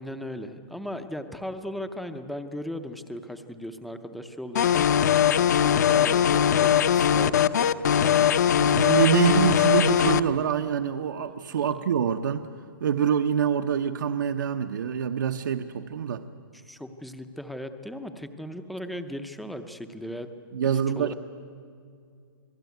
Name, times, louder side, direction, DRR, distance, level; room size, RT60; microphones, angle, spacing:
voice 1, 0.0-7.7 7.9-8.3 16.5-20.3 20.6-21.1, equal, ahead, 7 dB, 0.6 m, -37 dB
sound 1, 4.5-10.2, left 9 dB, 50° left, 0.8 m, -20 dB
voice 2, 8.6-12.5 12.8-16.2 20.5-21.1, right 8 dB, 60° right, 5 dB, 1.0 m, -25 dB
28.5 x 19.5 x 9.3 m, 2.4 s
hypercardioid pair, 175°, 11 cm